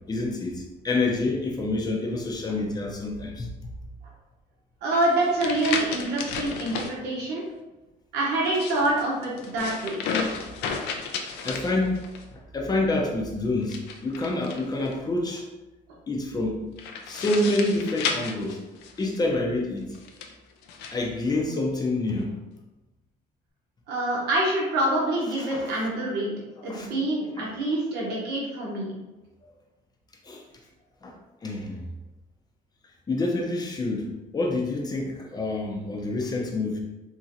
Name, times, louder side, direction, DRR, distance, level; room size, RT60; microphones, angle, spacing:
voice 1, 0.1-3.5 11.4-12.0 12.3-15.4 16.1-16.6 17.1-18.6 19.0-20.0 20.9-22.4 25.4-25.8 26.7-26.9 27.4-27.5 30.2-30.4 31.0-31.9 33.1-36.8, left 2 dB, 25° left, 1 dB, 0.6 m, -27 dB
voice 2, 4.8-7.4 8.1-10.0 23.9-26.3 26.6-29.0, right 1 dB, 75° right, -4 dB, 0.9 m, -26 dB
sound 1, 4.9-6.9 8.4-12.3 13.6-14.9 16.8-19.2 19.9-21.0, left 5 dB, 85° left, 0.4 m, -33 dB
2.9 x 2.7 x 2.5 m, 1.0 s
cardioid pair, 110°, 17 cm